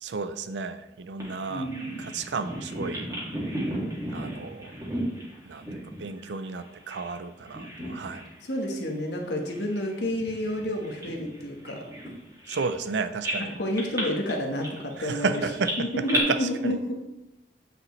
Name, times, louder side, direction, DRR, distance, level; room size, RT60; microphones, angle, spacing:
voice 1, 0.0-1.7 2.0-3.1 4.1-4.7 5.4-8.2 12.5-13.5 15.0-16.8, right 4 dB, 85° right, 11 dB, 0.5 m, -32 dB
Bird vocalization bird call bird song, 1.2-7.2 7.4-8.3 8.7-8.9 9.5-12.9 13.2-16.2, right 1 dB, 20° right, 2.1 m, -35 dB
voice 2, 1.5-2.3 8.4-11.9 13.4-15.3 15.8-16.9, left 1 dB, 80° left, 2 dB, 1.2 m, -30 dB
8.6 x 5.2 x 3.2 m, 0.98 s
head